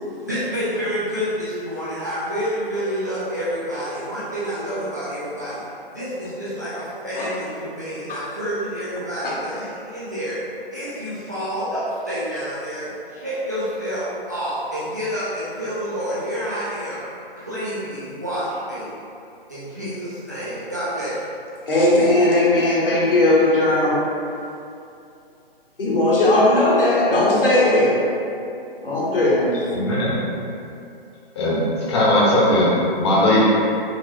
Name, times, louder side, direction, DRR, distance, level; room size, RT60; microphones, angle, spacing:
voice 1, 0.0-5.6 5.9-10.4 10.7-17.0 17.4-18.9 19.5-21.2, equal, 20° right, -11 dB, 0.3 m, -28 dB
voice 2, 21.7-24.0 25.8-28.0 28.8-29.6, left 1 dB, 65° left, -6 dB, 1.1 m, -17 dB
voice 3, 29.7-30.2 31.4-31.6 31.9-32.7 33.0-33.4, left 1 dB, 30° left, -6 dB, 0.8 m, -18 dB
4.7 x 2.7 x 2.6 m, 2.6 s
figure-of-eight pair, 135°, 30 cm